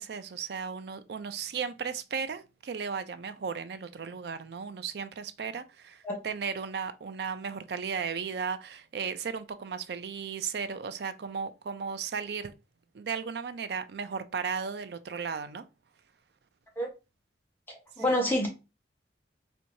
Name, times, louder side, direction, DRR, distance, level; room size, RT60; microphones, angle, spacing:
voice 1, 0.0-12.5 12.9-15.6 18.1-18.2, right 6 dB, 65° right, 0.4 m, -35 dB
voice 2, 18.0-18.5, left 1 dB, 10° left, 1.0 m, -27 dB
4.4 x 2.7 x 2.6 m
head